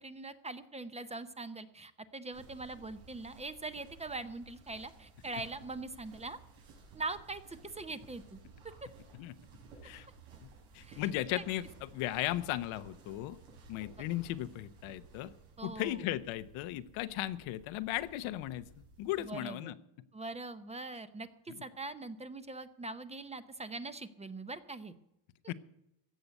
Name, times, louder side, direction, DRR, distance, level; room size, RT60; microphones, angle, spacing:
voice 1, 0.0-6.4 6.9-8.4 10.8-11.0 15.6-16.0 19.2-19.7 20.1-24.9 25.4-25.5, right 3 dB, 15° right, 12 dB, 0.7 m, -42 dB
sound 1, 2.3-19.3, right 4 dB, 90° right, 5.6 m, -56 dB
voice 2, 10.7-13.4 13.7-15.3 15.6-18.7 19.0-19.8 21.5-21.6 25.5-25.6, left 14 dB, 90° left, 12 dB, 1.0 m, -36 dB
15.5 x 6.8 x 9.2 m, 0.84 s
cardioid pair, 140°, 46 cm